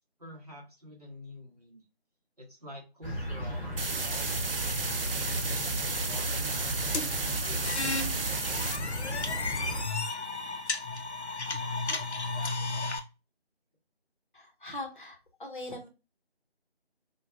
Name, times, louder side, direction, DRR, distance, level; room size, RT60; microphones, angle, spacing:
voice 1, 0.2-1.8 2.4-4.6 5.0-8.8, left 1 dB, 35° right, -2 dB, 0.9 m, -48 dB
sound 1, 3.0-9.8, equal, ahead, 0.7 m, -35 dB
sound 2, 3.8-8.8, right 4 dB, 60° right, 0.5 m, -33 dB
sound 3, 6.9-13.0, left 3 dB, 90° left, 0.7 m, -33 dB
voice 2, 14.3-15.9, left 2 dB, 50° left, 2 dB, 0.8 m, -41 dB
3.3 x 2.3 x 2.4 m, 0.29 s
figure-of-eight pair, 165°, 33 cm